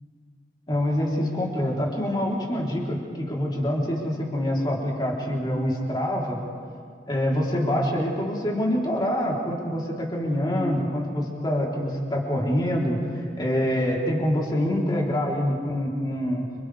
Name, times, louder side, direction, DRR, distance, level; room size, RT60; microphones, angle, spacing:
voice 1, 0.7-6.4 7.1-13.0 13.4-16.4, equal, 25° left, -3 dB, 3.7 m, -25 dB
29.5 x 27.0 x 3.5 m, 2.2 s
head